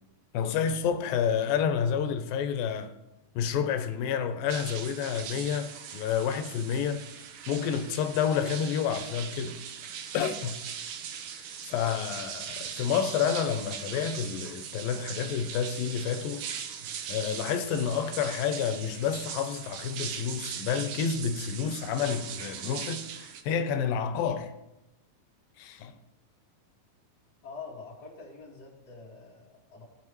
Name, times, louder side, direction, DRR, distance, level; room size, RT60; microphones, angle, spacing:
voice 1, 0.3-2.9 3.4-7.1 7.5-9.6 10.1-10.6 11.4-16.5 17.1-24.5 25.6-26.0, left 7 dB, 85° left, 2.4 m, -29 dB
sound 1, 4.5-23.4, right 8 dB, 75° right, 2.0 m, -40 dB
voice 2, 27.4-29.8, left 4 dB, 30° left, 2.4 m, -45 dB
16.5 x 5.5 x 3.1 m
omnidirectional pair, 4.0 m